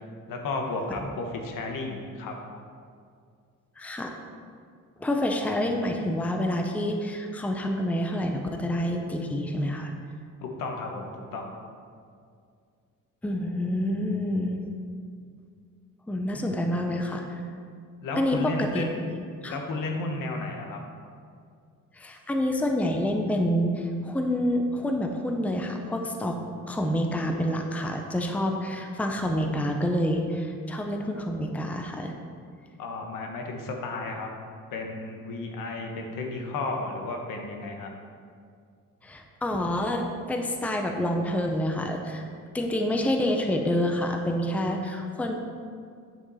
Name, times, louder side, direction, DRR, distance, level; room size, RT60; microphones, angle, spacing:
voice 1, 0.3-2.3 10.4-11.5 18.0-18.9 19.4-20.8 32.8-34.3 34.7-37.9, left 3 dB, 75° left, 2 dB, 1.3 m, -33 dB
voice 2, 3.8-4.1 5.0-9.9 13.2-14.6 16.1-17.4 18.2-18.8 19.4-19.6 21.9-26.4 26.7-32.1 39.0-42.2 42.5-45.3, left 1 dB, 5° left, 3 dB, 0.6 m, -27 dB
9.1 x 5.8 x 4.1 m, 2.2 s
cardioid pair, 135°, 33 cm